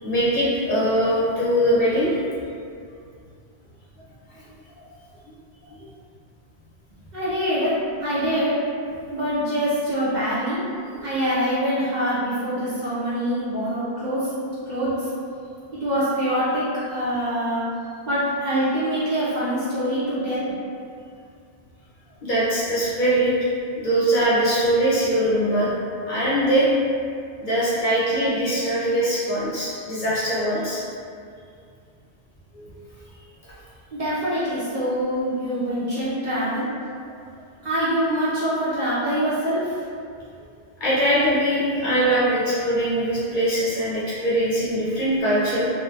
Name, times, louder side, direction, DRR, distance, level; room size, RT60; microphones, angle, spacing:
voice 1, 0.0-2.2 4.3-4.4 5.8-5.9 22.2-23.3 23.8-25.7 26.1-26.7 27.4-30.8 32.5-32.7 40.8-45.7, right 1 dB, 55° left, -9 dB, 0.7 m, -22 dB
voice 2, 7.1-7.7 8.0-8.6 9.1-10.6 11.0-14.3 14.7-15.1 15.8-16.6 16.9-17.6 18.1-20.4 33.9-36.7 37.6-39.7, equal, 50° right, -10 dB, 0.6 m, -24 dB
2.7 x 2.1 x 2.3 m, 2.3 s
omnidirectional pair, 1.1 m